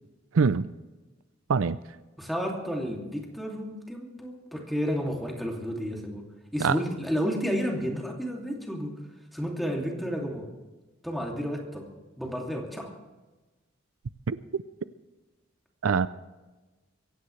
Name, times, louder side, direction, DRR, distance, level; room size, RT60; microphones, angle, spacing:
voice 1, 0.3-0.7 1.5-1.8 6.6-6.8 14.3-14.6 15.8-16.1, right 5 dB, 80° right, 15 dB, 0.5 m, -24 dB
voice 2, 2.2-6.2 6.5-9.0 9.3-10.4 11.0-11.9 12.2-12.9, equal, ahead, -1 dB, 2.7 m, -31 dB
23.5 x 16.5 x 3.3 m, 1.2 s
head